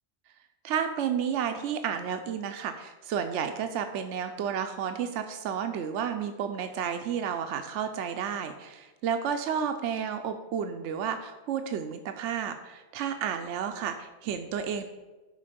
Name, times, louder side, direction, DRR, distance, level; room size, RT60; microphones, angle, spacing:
voice 1, 0.6-14.8, right 8 dB, 85° right, 7 dB, 0.9 m, -31 dB
11.5 x 4.0 x 5.1 m, 1.2 s
omnidirectional pair, 1.2 m